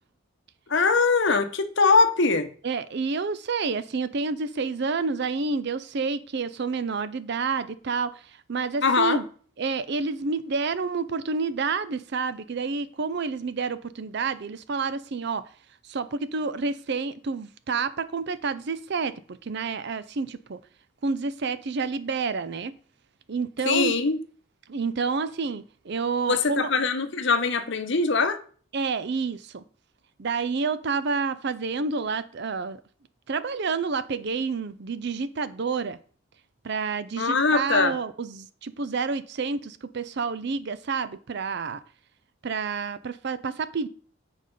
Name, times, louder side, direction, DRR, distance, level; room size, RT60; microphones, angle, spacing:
voice 1, 0.7-2.5 8.8-9.2 23.6-24.2 26.3-28.4 37.2-37.9, left 4 dB, 55° left, 0.8 m, -22 dB
voice 2, 2.6-9.3 9.6-15.5 15.8-20.6 21.0-22.7 23.3-23.9 24.7-26.7 28.7-29.6 30.2-32.8 33.3-36.0 36.6-41.8 42.4-43.9, right 4 dB, 50° right, 0.5 m, -29 dB
7.9 x 5.0 x 5.3 m
head